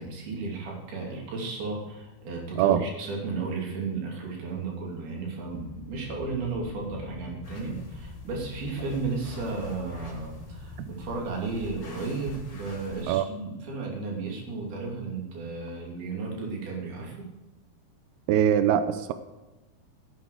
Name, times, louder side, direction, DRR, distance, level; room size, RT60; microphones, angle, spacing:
voice 1, 0.0-17.2, right 4 dB, 60° right, -1 dB, 4.5 m, -34 dB
sound 1, 5.5-11.2, left 5 dB, 80° left, 4.0 m, -44 dB
sound 2, 7.4-13.0, left 2 dB, 25° left, 3.2 m, -45 dB
voice 2, 18.3-19.1, right 10 dB, 85° right, 10 dB, 2.3 m, -22 dB
15.0 x 9.3 x 4.8 m, 1.1 s
omnidirectional pair, 5.3 m